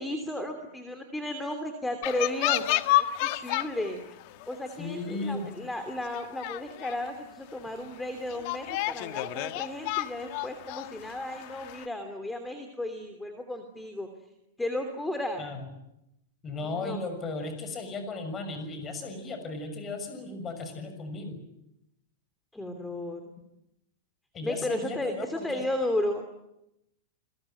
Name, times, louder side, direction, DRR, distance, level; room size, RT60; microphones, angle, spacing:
voice 1, 0.0-4.0 4.5-14.1 14.6-15.4 16.6-17.0 22.5-23.3 24.4-26.3, left 1 dB, 5° left, 6 dB, 2.9 m, -34 dB
sound 1, 2.0-3.9 4.2-4.6 5.2-5.3 5.7-5.8 6.1-7.1 7.6-7.7 8.3-11.9, left 16 dB, 50° left, 1.5 m, -30 dB
voice 2, 4.8-5.5 15.4-15.7 16.4-21.4 24.3-25.6, left 3 dB, 20° left, 7 dB, 6.5 m, -36 dB
29.5 x 21.5 x 9.2 m, 0.86 s
supercardioid pair, 145°, 0 cm